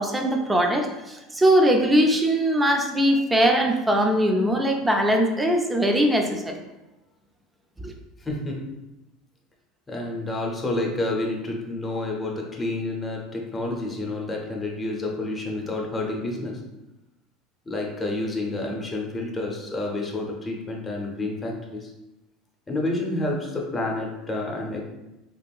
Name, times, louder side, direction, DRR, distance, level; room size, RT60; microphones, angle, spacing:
voice 1, 0.0-6.6 7.8-7.9, equal, 15° right, 3 dB, 0.4 m, -21 dB
voice 2, 8.2-8.6 9.9-16.6 17.7-21.9 22.7-24.8, left 2 dB, 20° left, -1 dB, 0.8 m, -29 dB
3.4 x 2.5 x 2.3 m, 0.97 s
hypercardioid pair, 80°, 0 cm